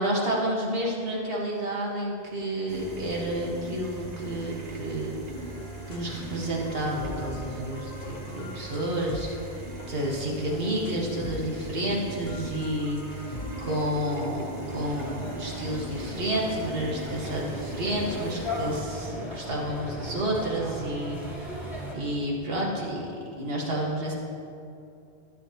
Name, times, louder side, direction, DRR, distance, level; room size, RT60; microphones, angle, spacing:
voice 1, 0.0-5.2 5.9-9.5 9.9-13.4 13.6-21.6 21.9-23.0 23.4-24.1, right 1 dB, 65° right, -3 dB, 1.9 m, -30 dB
sound 1, 2.7-18.8, right 2 dB, 40° right, 1.1 m, -39 dB
sound 2, 5.4-6.1 6.5-11.7 12.3-14.3, left 3 dB, 80° left, 1.3 m, -43 dB
sound 3, 14.6-21.9, left 1 dB, ahead, 2.1 m, -37 dB
13.5 x 9.4 x 3.0 m, 2.6 s
omnidirectional pair, 1.1 m